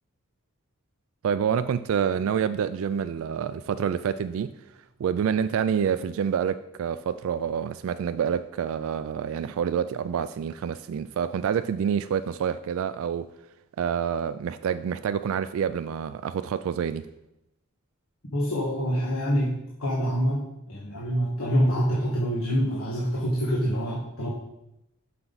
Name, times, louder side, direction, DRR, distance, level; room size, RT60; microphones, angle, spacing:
voice 1, 1.2-4.5 5.0-13.3 13.8-17.1, right 7 dB, 65° right, 12 dB, 0.3 m, -27 dB
voice 2, 18.3-24.3, equal, 80° left, -4 dB, 1.5 m, -26 dB
7.7 x 5.9 x 4.0 m, 0.88 s
head